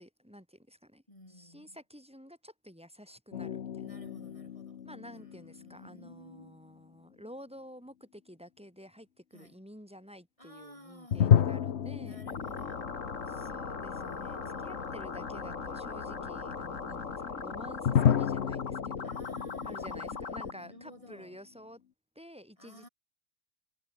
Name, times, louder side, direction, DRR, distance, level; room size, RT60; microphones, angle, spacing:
voice 1, 0.0-4.0 4.8-12.2 13.3-19.1 19.6-21.8 22.2-22.9, equal, 5° right, 7.3 m, -51 dB
voice 2, 1.1-1.8 3.8-6.6 9.3-9.6 10.4-11.3 12.0-13.0 13.3-13.6 13.9-15.1 19.0-21.4 22.6-22.9, left 1 dB, 25° left, 4.7 m, -55 dB
sound 1, 3.3-6.6 11.1-14.2 14.4-14.5 17.9-21.2, left 9 dB, 60° left, 1.1 m, -31 dB
sound 2, 12.3-20.5, left 5 dB, 80° left, 2.4 m, -38 dB
omnidirectional pair, 1.3 m